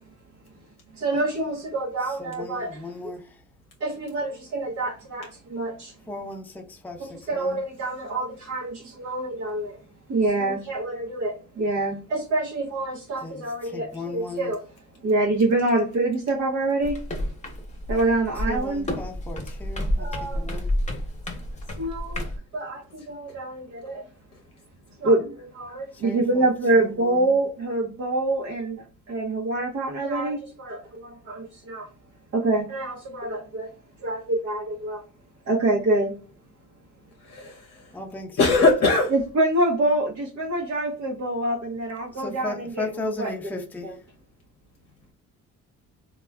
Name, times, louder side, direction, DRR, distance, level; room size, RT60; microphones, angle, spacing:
voice 1, 0.9-2.8 3.8-5.9 7.3-9.8 10.1-14.6 15.0-17.0 17.9-18.9 20.0-20.4 21.8-22.3 22.5-24.0 25.0-31.9 32.3-33.7 34.0-35.0 35.4-36.1 39.1-43.3 43.8-43.9, right 2 dB, 60° right, 0.8 m, -26 dB
voice 2, 2.0-3.4 6.1-7.6 13.2-14.5 18.3-20.7 25.9-27.4 37.9-38.5 38.8-38.9 42.1-44.1, left 2 dB, 5° left, 0.5 m, -36 dB
sound 1, 16.8-22.4, equal, 25° left, 0.9 m, -30 dB
voice 3, 37.3-37.7 38.4-39.1, left 3 dB, 55° left, 0.7 m, -20 dB
3.3 x 2.3 x 2.2 m
cardioid pair, 90°, 30 cm